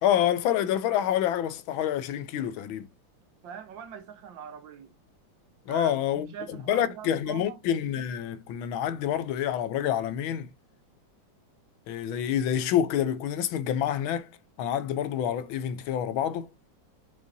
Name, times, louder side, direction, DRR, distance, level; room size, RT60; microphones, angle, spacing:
voice 1, 0.0-2.9 5.7-6.3 6.7-10.5 11.9-14.3 14.6-16.5, left 10 dB, 85° left, 1.5 m, -27 dB
voice 2, 3.4-4.9 5.7-7.6, right 8 dB, 70° right, 1.9 m, -42 dB
7.3 x 5.8 x 2.6 m
omnidirectional pair, 2.2 m